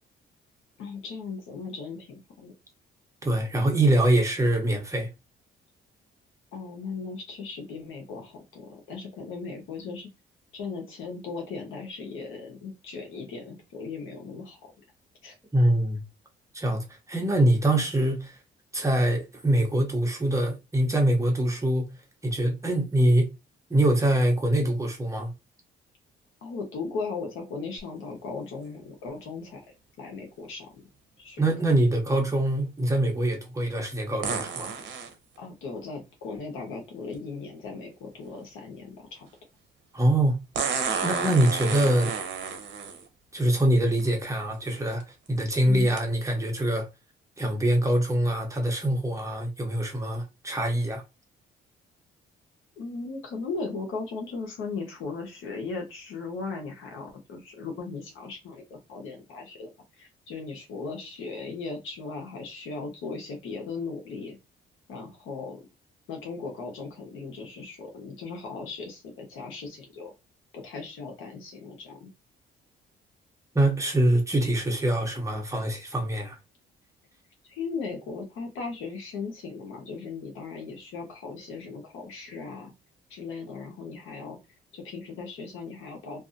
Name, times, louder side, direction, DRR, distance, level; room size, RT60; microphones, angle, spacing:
voice 1, 0.8-2.5 6.5-10.1 10.5-14.7 15.2-15.3 26.4-29.6 30.0-30.8 31.2-31.4 35.4-39.3 45.6-45.9 52.8-59.7 60.0-64.4 64.9-65.6 66.1-70.1 70.5-72.1 77.5-82.7 83.1-84.4 84.7-86.2, left 4 dB, 85° left, 1.0 m, -37 dB
voice 2, 3.2-5.1 15.5-16.0 16.5-18.4 18.7-21.9 22.2-23.3 23.7-25.3 31.4-34.8 39.9-40.4 41.0-42.1 43.3-46.9 47.4-51.0 73.5-76.4, right 1 dB, 15° right, 0.9 m, -24 dB
sound 1, 27.8-27.9 34.2-35.1 37.1-37.2 40.5-43.0 44.0-44.1 44.7-45.0 46.0-46.1, right 6 dB, 65° right, 0.7 m, -31 dB
2.6 x 2.4 x 2.5 m
cardioid pair, 90°, 20 cm